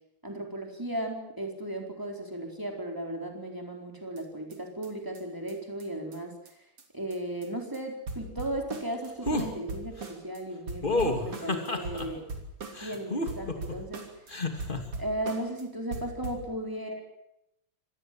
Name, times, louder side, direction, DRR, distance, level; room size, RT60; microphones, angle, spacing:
voice 1, 0.2-6.7 6.9-12.3 12.8-14.1 15.0-17.0, right 1 dB, 10° right, 2 dB, 4.2 m, -36 dB
sound 1, 4.2-4.3 4.5-4.6 4.8-4.9 5.2-5.3 5.5-5.6 5.8-5.9 6.1-6.2 6.5-6.6 6.8-6.9 7.1-7.5 7.7-7.8 8.1-10.4 10.7-13.0 13.3-14.3 14.6-15.6 15.9-16.5, right 2 dB, 85° right, 4.0 m, -40 dB
sound 2, 9.2-9.5 10.8-12.1 12.7-13.7 14.3-14.8, left 2 dB, 25° left, 2.7 m, -29 dB
25.5 x 19.5 x 7.7 m, 0.83 s
omnidirectional pair, 2.4 m